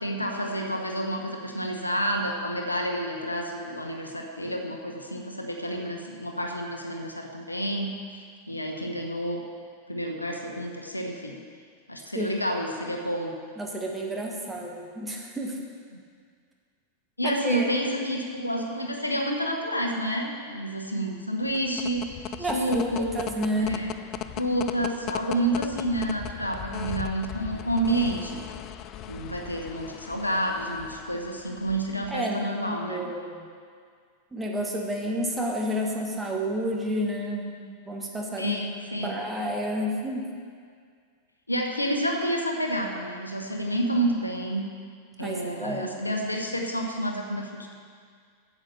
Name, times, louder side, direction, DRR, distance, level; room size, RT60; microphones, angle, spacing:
voice 1, 0.0-9.4 9.9-11.4 11.9-13.3 17.2-22.0 22.5-23.2 23.5-23.9 24.4-28.4 29.1-33.1 38.4-39.1 41.5-44.6 45.2-47.7, right 1 dB, 85° left, 2 dB, 1.0 m, -29 dB
voice 2, 13.6-15.6 17.2-17.7 22.4-23.8 32.1-33.5 34.3-38.6 39.0-40.3 45.2-46.0, equal, 10° right, -1 dB, 1.5 m, -30 dB
sound 1, 21.4-32.2, left 11 dB, 35° left, 0.4 m, -38 dB
9.1 x 7.2 x 6.9 m, 2.1 s
figure-of-eight pair, 90°, 0 cm